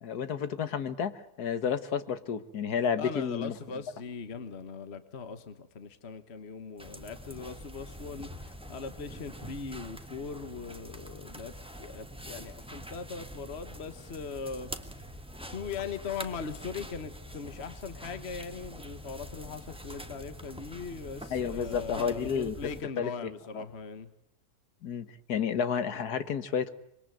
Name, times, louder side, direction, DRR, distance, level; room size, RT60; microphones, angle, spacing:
voice 1, 0.0-3.5 21.3-22.6 23.0-23.1 23.5-23.6 24.8-26.7, left 7 dB, 90° left, 1.8 m, -31 dB
voice 2, 3.0-14.7 15.1-15.2 15.5-24.1, left 5 dB, 45° left, 1.5 m, -40 dB
sound 1, 6.8-22.8, equal, 5° right, 1.5 m, -45 dB
26.0 x 22.0 x 9.2 m
omnidirectional pair, 1.6 m